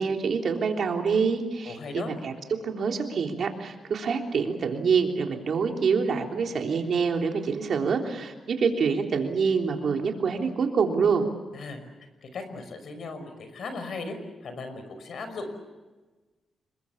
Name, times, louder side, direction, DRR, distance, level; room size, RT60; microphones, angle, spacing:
voice 1, 0.0-2.3 2.6-11.3, right 5 dB, 60° right, 3 dB, 3.5 m, -26 dB
voice 2, 1.7-2.1 11.5-11.8 12.2-14.1 14.4-15.6, left 3 dB, 65° left, 8 dB, 5.5 m, -37 dB
27.5 x 23.0 x 7.2 m, 1.2 s
cardioid pair, 120°, 0 cm